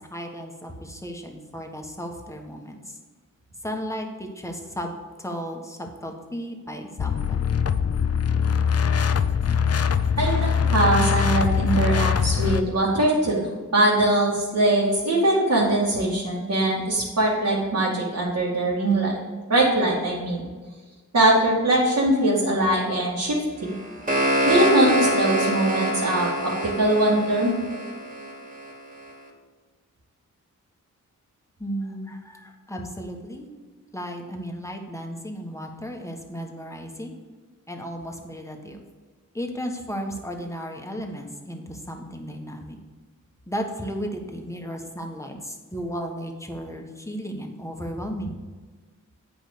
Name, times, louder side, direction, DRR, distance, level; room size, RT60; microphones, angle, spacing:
voice 1, 0.0-3.0 3.6-7.4 31.6-33.5 33.9-37.1 37.7-38.8 39.3-42.8 43.5-48.4, equal, 10° left, 2 dB, 1.5 m, -34 dB
sound 1, 7.0-12.6, left 7 dB, 50° left, 0.5 m, -22 dB
voice 2, 10.2-13.5 13.7-19.2 19.5-20.4 21.1-23.4 23.6-23.7 24.5-27.5, right 1 dB, 60° right, -7 dB, 2.4 m, -21 dB
sound 2, 23.7-28.7, right 1 dB, 25° right, 2.5 m, -25 dB
9.0 x 5.1 x 6.8 m, 1.4 s
wide cardioid pair, 75°, 31 cm